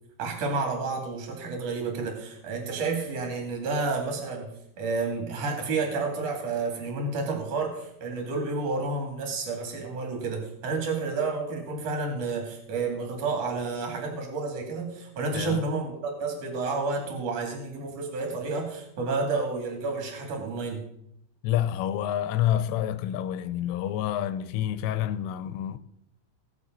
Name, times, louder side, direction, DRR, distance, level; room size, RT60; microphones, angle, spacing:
voice 1, 0.2-20.8, right 3 dB, 40° right, 2.9 m, -30 dB
voice 2, 21.4-25.8, left 11 dB, 85° left, 3.1 m, -28 dB
19.0 x 7.2 x 4.0 m
omnidirectional pair, 5.7 m